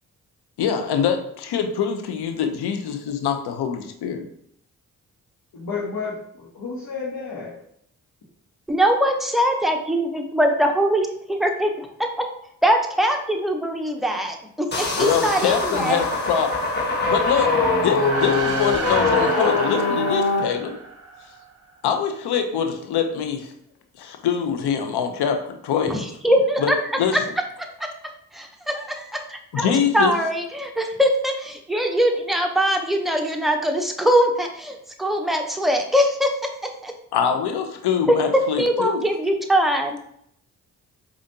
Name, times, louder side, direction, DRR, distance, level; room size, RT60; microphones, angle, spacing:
voice 1, 0.6-4.2 14.9-16.6 17.0-20.7 21.8-23.5 24.0-26.1 26.6-26.7 27.0-27.2 29.5-30.1 37.1-39.0, left 7 dB, 70° left, 5 dB, 0.7 m, -24 dB
voice 2, 5.5-7.5, left 4 dB, 55° left, -6 dB, 1.1 m, -31 dB
voice 3, 8.7-11.9 12.2-12.3 12.6-16.0 25.9-26.7 27.6-27.9 28.3-36.3 36.8-36.9 38.1-38.2 38.6-40.0, equal, ahead, 3 dB, 0.7 m, -22 dB
sound 1, 14.7-20.4, left 3 dB, 25° left, 1.2 m, -22 dB
sound 2, 17.9-21.5, right 4 dB, 35° right, 0.7 m, -31 dB
5.0 x 2.5 x 2.7 m, 0.69 s
supercardioid pair, 40°, 41 cm